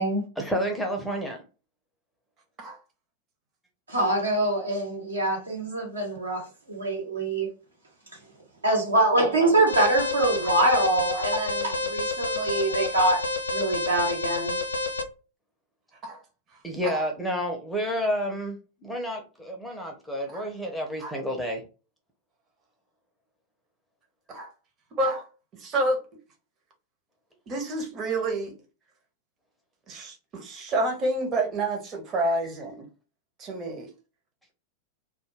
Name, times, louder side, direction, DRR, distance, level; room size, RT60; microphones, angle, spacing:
voice 1, 0.4-1.4 16.6-21.6, equal, 5° left, 0.6 m, -30 dB
voice 2, 3.9-6.4 6.7-7.5 8.6-13.2 13.5-14.6, right 1 dB, 75° right, 1.0 m, -24 dB
Alarm, 9.7-15.0, left 2 dB, 80° left, 0.4 m, -29 dB
voice 3, 24.9-25.3 25.5-26.0 27.5-28.5 29.9-32.9 33.4-33.9, right 2 dB, 30° right, 0.8 m, -29 dB
2.2 x 2.1 x 3.1 m
figure-of-eight pair, 90°, 0 cm